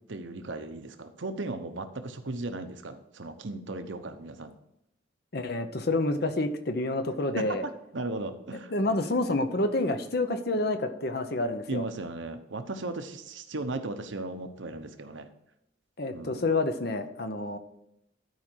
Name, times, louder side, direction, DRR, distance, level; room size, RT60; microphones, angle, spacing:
voice 1, 0.1-4.5 7.3-7.4 7.9-8.7 11.7-15.3 16.1-16.5, right 2 dB, 80° right, 8 dB, 0.9 m, -36 dB
voice 2, 5.3-7.7 8.7-11.8 16.0-17.6, left 2 dB, 55° left, 9 dB, 0.8 m, -28 dB
12.5 x 5.0 x 4.5 m, 0.83 s
head